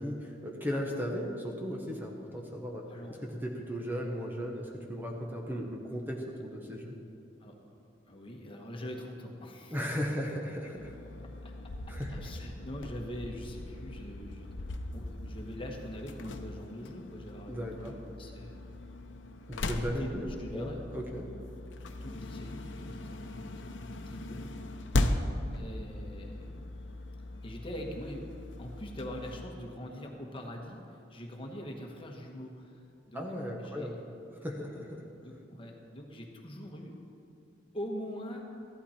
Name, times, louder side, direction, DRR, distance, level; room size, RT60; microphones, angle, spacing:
voice 1, 0.0-2.9 3.4-7.0 9.7-10.9 11.9-12.2 17.5-17.9 19.5-21.3 33.1-34.0 34.4-35.0, equal, 10° right, 0 dB, 1.1 m, -36 dB
voice 2, 2.8-3.2 7.4-9.8 11.4-11.5 12.1-18.7 19.6-20.8 22.0-23.5 23.7-24.6 25.5-26.6 27.4-33.3 33.6-34.0 35.2-37.0 37.7-38.4, equal, 30° left, 1 dB, 1.4 m, -43 dB
sound 1, 10.7-29.5, left 1 dB, 85° left, 0.8 m, -38 dB
14.5 x 11.5 x 4.4 m, 2.6 s
head